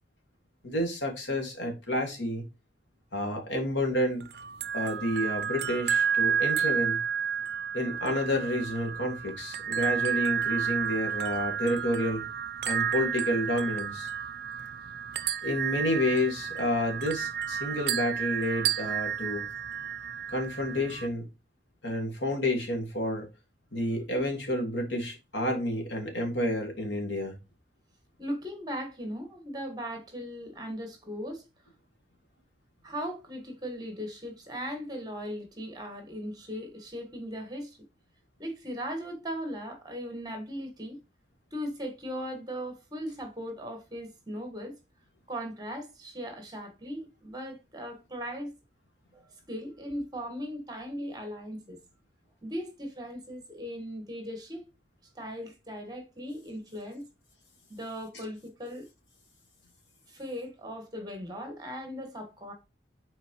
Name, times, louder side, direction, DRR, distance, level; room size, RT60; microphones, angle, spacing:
voice 1, 0.6-2.4 3.1-4.2 4.7-7.0 7.7-12.2 12.6-14.1 15.4-19.4 20.3-21.2 21.8-23.3 23.7-27.3, left 1 dB, 85° left, 2.0 m, -30 dB
sound 1, 4.2-21.1, right 7 dB, 60° right, 0.5 m, -31 dB
voice 2, 28.2-31.4 32.8-37.8 38.4-41.0 41.5-44.8 45.3-48.5 49.1-51.8 52.4-54.7 55.1-57.1 57.7-58.9 60.1-62.5, equal, 20° right, 1.5 m, -38 dB
7.2 x 4.5 x 3.0 m
head